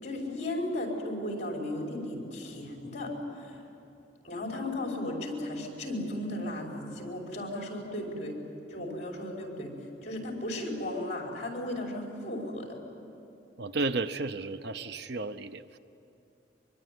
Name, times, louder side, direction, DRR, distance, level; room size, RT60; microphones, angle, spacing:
voice 1, 0.0-3.6 4.2-8.4 8.7-12.8, left 1 dB, 40° left, 0 dB, 5.3 m, -35 dB
voice 2, 13.6-15.8, right 3 dB, 60° right, 11 dB, 0.7 m, -33 dB
24.0 x 23.0 x 9.5 m, 2.9 s
head